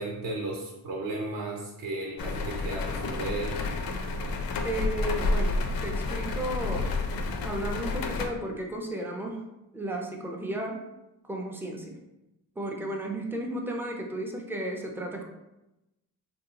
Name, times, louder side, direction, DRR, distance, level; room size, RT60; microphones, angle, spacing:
voice 1, 0.0-3.7, right 2 dB, 65° right, -1 dB, 0.6 m, -34 dB
sound 1, 2.2-8.3, left 3 dB, 70° left, 0.5 m, -30 dB
voice 2, 4.6-6.9 7.4-9.5 9.7-10.8 11.2-12.0 12.6-15.2, right 1 dB, 5° right, 0 dB, 0.3 m, -34 dB
3.4 x 2.6 x 2.8 m, 0.95 s
wide cardioid pair, 155°, 36 cm